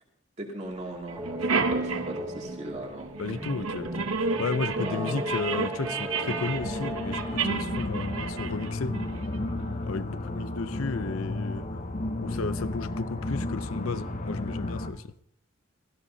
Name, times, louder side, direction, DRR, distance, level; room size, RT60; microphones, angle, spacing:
voice 1, 0.4-3.1 4.8-5.3, right 1 dB, 30° right, 0 dB, 2.5 m, -37 dB
sound 1, 0.7-0.8 1.1-9.7, right 4 dB, 85° right, 1.0 m, -32 dB
sound 2, 1.1-7.4, equal, 10° right, 0.7 m, -36 dB
voice 2, 3.2-9.0 9.9-11.8 12.2-15.1, left 4 dB, 90° left, 14 dB, 0.6 m, -33 dB
sound 3, 6.5-14.9, left 2 dB, 35° left, 0.9 m, -33 dB
17.5 x 15.0 x 2.8 m, 0.70 s
head